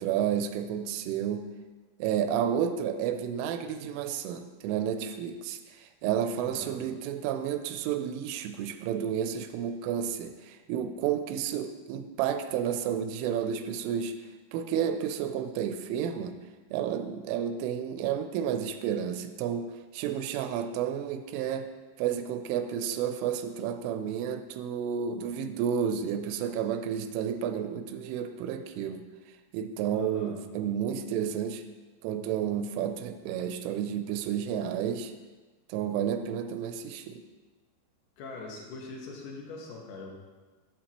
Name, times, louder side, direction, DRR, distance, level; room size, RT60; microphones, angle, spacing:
voice 1, 0.0-1.5 2.0-14.2 14.5-16.4 16.7-21.7 22.0-29.0 29.5-31.6 32.0-35.1 35.7-37.2, right 8 dB, 90° right, 8 dB, 3.1 m, -31 dB
voice 2, 6.4-6.7 29.9-30.3 38.2-40.1, left 3 dB, 75° left, -1 dB, 1.9 m, -42 dB
13.5 x 7.2 x 3.0 m, 1.3 s
omnidirectional pair, 5.6 m